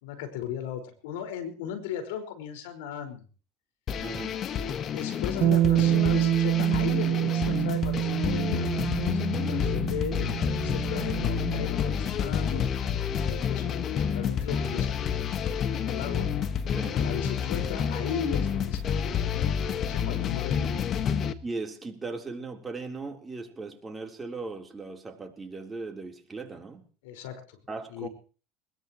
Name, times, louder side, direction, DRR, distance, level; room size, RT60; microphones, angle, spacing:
voice 1, 0.0-3.2 4.9-12.6 13.2-14.9 15.8-16.3 16.9-20.7 27.0-27.6 27.9-28.1, left 8 dB, 80° left, 7 dB, 5.1 m, -37 dB
sound 1, 3.9-21.3, left 8 dB, 40° left, 1.6 m, -29 dB
voice 2, 4.0-4.4 16.7-17.0 21.4-26.8 27.7-28.1, right 3 dB, 20° right, 3 dB, 3.6 m, -38 dB
Bass guitar, 5.4-11.7, right 12 dB, 50° right, 1.2 m, -26 dB
21.5 x 21.0 x 3.1 m, 0.38 s
supercardioid pair, 100°, 0 cm